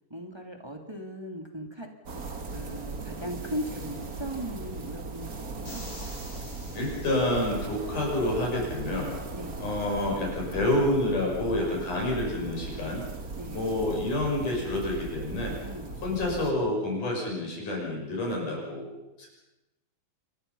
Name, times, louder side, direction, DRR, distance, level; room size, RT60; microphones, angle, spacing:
voice 1, 0.1-1.9 2.5-5.8 9.3-9.6 13.3-13.6 15.6-16.0, equal, 10° right, 3 dB, 2.3 m, -38 dB
sound 1, 2.1-16.5, right 3 dB, 30° right, 1.9 m, -38 dB
sound 2, 5.6-7.9, left 1 dB, 25° left, 8.1 m, -48 dB
voice 2, 6.7-9.1 9.6-13.0 13.5-15.6 16.0-19.3, left 1 dB, 60° left, -1 dB, 7.7 m, -28 dB
28.5 x 23.5 x 5.6 m, 0.93 s
omnidirectional pair, 4.1 m